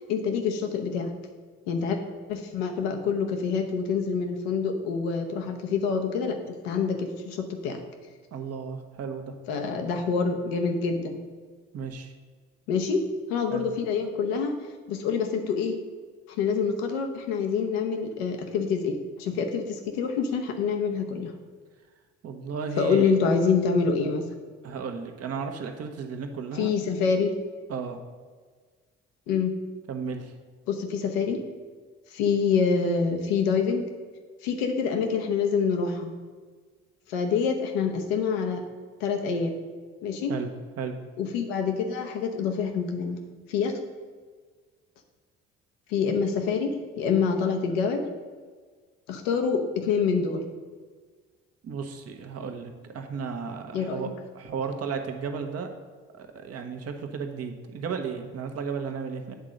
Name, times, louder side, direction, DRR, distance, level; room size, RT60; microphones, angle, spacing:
voice 1, 0.1-1.1 1.7-2.0 2.3-6.4 6.6-7.8 9.5-11.2 12.7-13.0 13.3-14.6 14.9-15.8 16.4-21.3 22.8-24.2 26.5-27.3 29.3-29.5 30.7-31.4 32.1-33.9 34.4-36.1 37.1-38.6 39.0-39.5 40.0-40.4 41.2-43.2 43.5-43.7 45.9-46.7 47.0-48.0 49.1-50.4 53.7-54.1, left 5 dB, 85° left, 4 dB, 0.9 m, -26 dB
voice 2, 8.3-9.3 11.7-12.1 13.5-13.6 22.2-23.1 24.6-26.7 27.7-28.0 29.9-30.3 40.3-40.5 40.8-40.9 51.6-54.1 54.3-55.7 56.1-59.3, right 5 dB, 55° right, 5 dB, 1.0 m, -34 dB
8.0 x 3.8 x 6.4 m, 1.5 s
hypercardioid pair, 55°, 30 cm